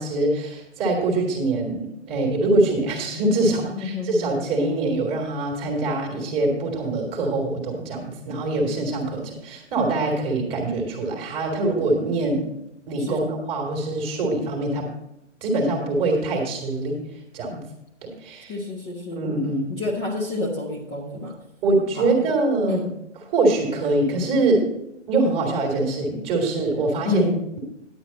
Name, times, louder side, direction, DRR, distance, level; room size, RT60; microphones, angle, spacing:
voice 1, 0.0-12.5 12.9-14.9 15.4-17.0 17.3-17.6 18.0-18.6 19.2-19.7 21.6-22.9 23.3-24.7 25.1-27.3, right 2 dB, 15° right, 0 dB, 2.0 m, -24 dB
voice 2, 3.7-4.4 13.0-13.2 18.5-19.2 19.8-21.3 22.0-22.1 22.7-22.9 27.1-27.4, left 2 dB, 20° left, -1 dB, 1.3 m, -28 dB
10.0 x 9.0 x 4.1 m, 0.84 s
figure-of-eight pair, 135°, 37 cm